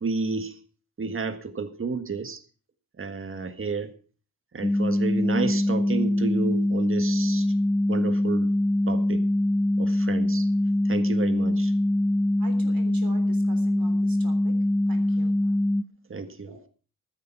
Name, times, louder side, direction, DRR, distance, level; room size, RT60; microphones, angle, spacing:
voice 1, 0.0-0.5 1.0-2.4 3.0-3.9 4.5-7.5 7.9-8.5 8.9-9.2 9.8-10.5 10.9-11.7 16.1-16.7, right 4 dB, 35° right, 9 dB, 1.8 m, -31 dB
sound 1, 4.6-15.8, left 1 dB, 10° left, 0.7 m, -23 dB
voice 2, 12.4-14.6 14.9-15.5 16.5-16.6, right 4 dB, 70° right, 7 dB, 3.5 m, -44 dB
13.0 x 10.0 x 5.7 m, 0.40 s
cardioid pair, 105°, 36 cm